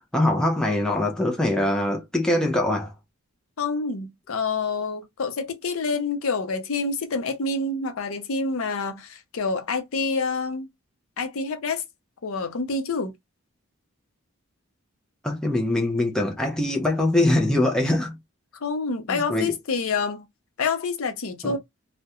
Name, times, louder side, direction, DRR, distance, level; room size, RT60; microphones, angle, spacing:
voice 1, 0.1-2.9 15.2-18.2 19.1-19.5 21.4-21.6, left 1 dB, 5° left, 0.4 m, -23 dB
voice 2, 3.6-10.7 11.2-11.8 12.2-13.1 18.6-20.2 20.6-21.6, left 4 dB, 75° left, 0.5 m, -27 dB
2.3 x 2.1 x 2.8 m
head